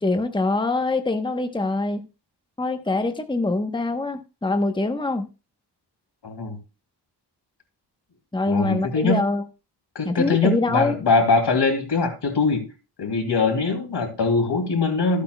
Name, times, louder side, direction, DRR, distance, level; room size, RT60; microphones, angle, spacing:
voice 1, 0.0-2.0 2.6-5.3 8.3-9.4 10.0-11.0, left 2 dB, 10° left, 1.0 m, -24 dB
voice 2, 6.2-6.6 8.5-9.2 9.9-12.6 13.0-15.2, left 4 dB, 80° left, 2.7 m, -22 dB
14.5 x 8.3 x 2.3 m
cardioid pair, 65°, 41 cm